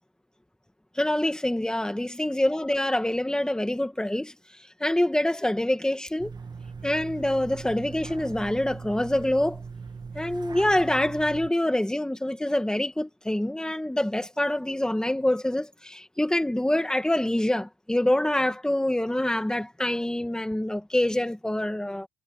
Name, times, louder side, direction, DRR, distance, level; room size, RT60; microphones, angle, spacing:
voice 1, 1.0-4.3 4.8-6.3 6.8-9.6 10.1-22.1, left 1 dB, 5° left, 2.1 m, -26 dB
sound 1, 6.2-11.5, right 5 dB, 25° right, 1.6 m, -40 dB
cardioid pair, 110°, 17 cm